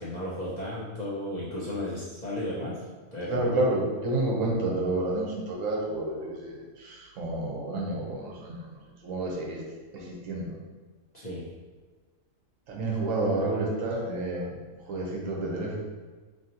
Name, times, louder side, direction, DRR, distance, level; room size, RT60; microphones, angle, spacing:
voice 1, 0.0-2.8 3.1-3.6 11.1-11.4, left 1 dB, 45° left, -8 dB, 0.6 m, -34 dB
voice 2, 3.3-9.6 9.9-10.5 12.7-15.8, right 2 dB, 70° right, -2 dB, 1.2 m, -30 dB
3.9 x 3.2 x 2.8 m, 1.4 s
omnidirectional pair, 1.4 m